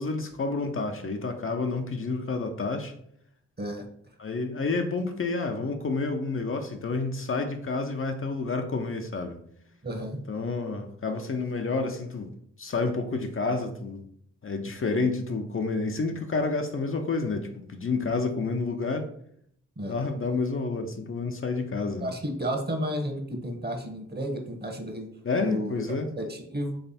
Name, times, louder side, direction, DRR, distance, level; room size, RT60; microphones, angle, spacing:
voice 1, 0.0-2.9 4.2-9.4 10.3-12.3 12.6-14.0 14.4-19.1 19.9-22.1 25.2-26.1, left 3 dB, 40° left, 5 dB, 0.7 m, -29 dB
voice 2, 9.8-10.2 19.8-19.9 22.0-25.1 25.4-25.8 26.2-26.8, equal, 30° right, 3 dB, 1.2 m, -32 dB
3.4 x 3.3 x 4.2 m, 0.68 s
supercardioid pair, 45°, 32 cm